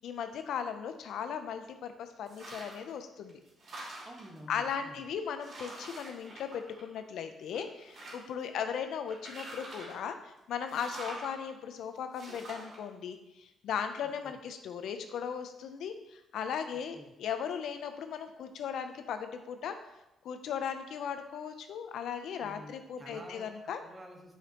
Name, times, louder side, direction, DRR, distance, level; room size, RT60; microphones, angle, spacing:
voice 1, 0.0-3.4 4.5-19.8 20.2-23.8, left 7 dB, 75° left, 7 dB, 0.6 m, -37 dB
sound 1, 2.3-2.9 3.3-4.4 5.0-5.1 5.4-7.1 7.5-8.4 9.1-10.1 10.7-11.3 12.1-12.8, right 1 dB, 55° right, 2.7 m, -45 dB
voice 2, 4.0-5.0 14.0-14.3 16.7-17.1 22.4-23.5 23.8-24.4, right 1 dB, 25° right, 1 dB, 1.4 m, -50 dB
9.0 x 5.0 x 3.0 m, 0.93 s
cardioid pair, 90°, 0 cm